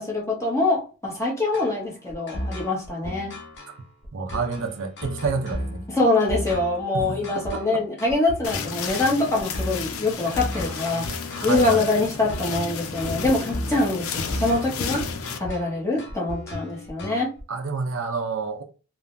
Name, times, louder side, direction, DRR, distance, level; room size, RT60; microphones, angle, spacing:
voice 1, 0.0-3.4 5.9-11.1 11.4-15.1 15.4-17.3, left 2 dB, 15° left, 0.8 m, -24 dB
sound 1, 1.5-17.4, equal, 55° left, 0.7 m, -35 dB
voice 2, 4.1-5.8 6.9-7.8 11.4-11.9 17.5-18.6, right 4 dB, 70° right, 0.5 m, -29 dB
sound 2, 8.4-15.4, left 6 dB, 85° left, 0.4 m, -33 dB
3.3 x 2.0 x 2.5 m
head